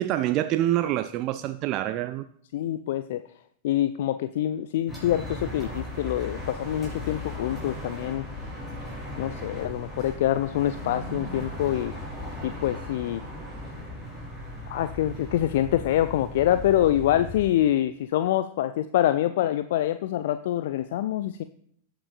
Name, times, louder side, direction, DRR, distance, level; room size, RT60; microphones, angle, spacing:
voice 1, 0.0-2.2, right 13 dB, 40° right, 0.3 m, -26 dB
voice 2, 2.5-3.2 3.6-8.3 9.2-11.9 12.4-13.2 14.7-21.4, left 12 dB, 55° left, 0.3 m, -25 dB
sound 1, 4.9-17.4, left 1 dB, 5° left, 4.3 m, -37 dB
18.0 x 6.1 x 2.5 m
figure-of-eight pair, 90°, 0 cm